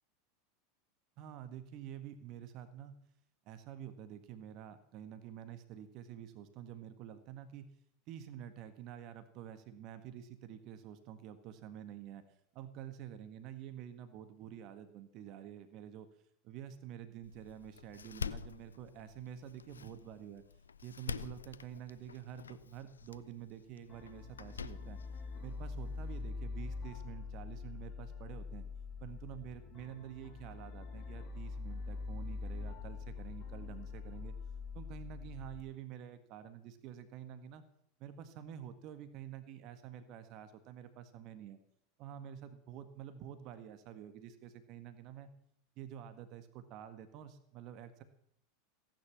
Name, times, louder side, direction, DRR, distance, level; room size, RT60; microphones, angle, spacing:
voice 1, 1.2-2.9 3.5-7.7 8.1-12.2 12.5-16.1 16.4-20.4 20.8-25.0 25.4-28.7 29.0-34.3 34.7-37.6 38.0-41.6 42.0-45.3 45.8-48.0, right 10 dB, 50° right, 10 dB, 1.7 m, -48 dB
Door, 17.2-26.2, left 6 dB, 85° left, 0.6 m, -47 dB
sound 1, 23.9-35.6, left 4 dB, 40° left, 3.9 m, -44 dB
16.5 x 10.5 x 7.2 m, 0.69 s
hypercardioid pair, 85°, 0 cm